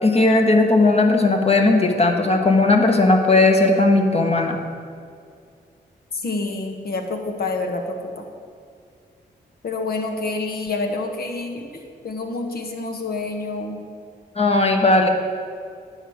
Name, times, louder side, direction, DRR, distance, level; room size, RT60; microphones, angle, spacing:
voice 1, 0.0-4.6 14.4-15.1, left 2 dB, 35° left, 3 dB, 1.4 m, -17 dB
voice 2, 6.1-8.2 9.6-11.7 12.0-13.8, left 3 dB, 60° left, 3 dB, 1.3 m, -27 dB
9.8 x 4.9 x 7.2 m, 2.3 s
cardioid pair, 60°, 17 cm